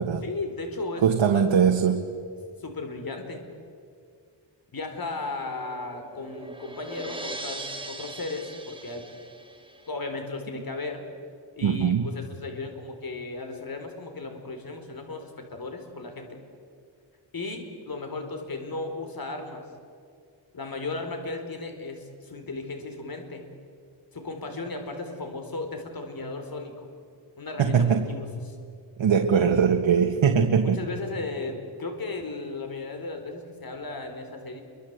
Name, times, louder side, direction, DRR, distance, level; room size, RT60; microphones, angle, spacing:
voice 1, 0.2-1.0 1.3-1.4 2.6-3.4 4.7-9.0 9.9-11.0 11.6-16.4 17.3-19.6 20.5-23.4 24.1-26.9 27.4-28.6 30.7-34.6, left 3 dB, 50° left, 5 dB, 4.3 m, -35 dB
voice 2, 1.0-2.0 11.6-12.1 27.6-28.1 29.0-30.8, right 7 dB, 85° right, 4 dB, 1.7 m, -21 dB
sound 1, 5.0-9.9, right 2 dB, 10° right, 2.6 m, -40 dB
29.5 x 24.5 x 8.2 m, 2.3 s
wide cardioid pair, 120°, 45 cm